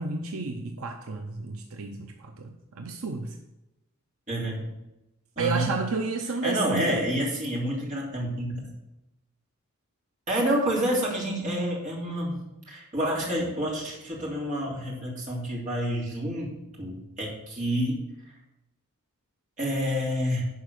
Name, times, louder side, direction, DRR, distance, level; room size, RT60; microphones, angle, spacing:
voice 1, 0.0-3.4 5.4-7.0, right 4 dB, 75° right, 4 dB, 0.8 m, -31 dB
voice 2, 4.3-4.7 5.4-5.7 6.4-8.6 10.3-18.0 19.6-20.5, equal, 35° right, -4 dB, 3.0 m, -28 dB
11.0 x 4.7 x 6.7 m, 0.95 s
head